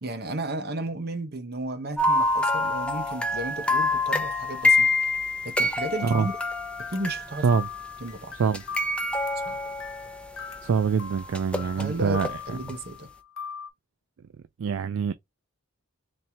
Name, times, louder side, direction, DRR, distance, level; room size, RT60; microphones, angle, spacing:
voice 1, 0.0-4.9 5.4-6.3 6.9-7.4 8.0-8.4 9.4-9.6 11.6-13.1, right 1 dB, 50° right, 1.0 m, -34 dB
sound 1, 2.0-7.9 8.5-10.6 11.3-12.3 12.7-12.8, left 2 dB, 5° left, 0.5 m, -26 dB
sound 2, 6.1-13.7, left 7 dB, 65° left, 1.0 m, -40 dB
voice 2, 10.6-12.3 14.6-15.1, right 6 dB, 65° right, 0.3 m, -24 dB
4.2 x 3.1 x 2.8 m
head